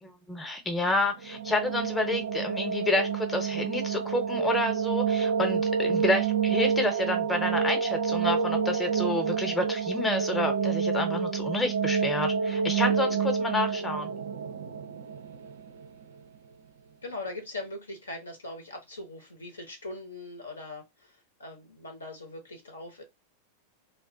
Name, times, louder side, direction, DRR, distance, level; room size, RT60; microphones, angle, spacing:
voice 1, 0.0-14.1, left 2 dB, 15° left, 0.7 m, -29 dB
sound 1, 1.1-16.0, right 6 dB, 65° right, 0.4 m, -28 dB
voice 2, 17.0-21.1 21.4-23.0, left 2 dB, 80° left, 0.8 m, -41 dB
2.4 x 2.1 x 2.5 m
figure-of-eight pair, 90°, 0 cm